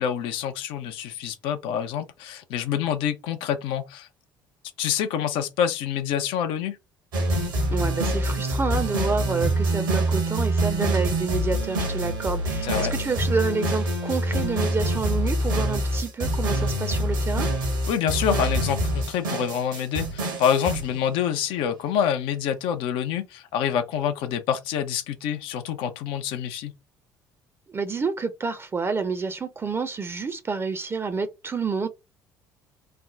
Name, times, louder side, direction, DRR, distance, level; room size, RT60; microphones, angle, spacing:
voice 1, 0.0-4.1 4.8-6.8 12.6-12.9 17.9-26.7, left 9 dB, 55° left, 0.5 m, -26 dB
sound 1, 7.1-21.1, right 1 dB, 75° right, 1.2 m, -25 dB
voice 2, 7.7-17.5 27.7-31.9, right 4 dB, 25° right, 0.6 m, -28 dB
3.3 x 2.1 x 3.6 m
figure-of-eight pair, 55°, 11 cm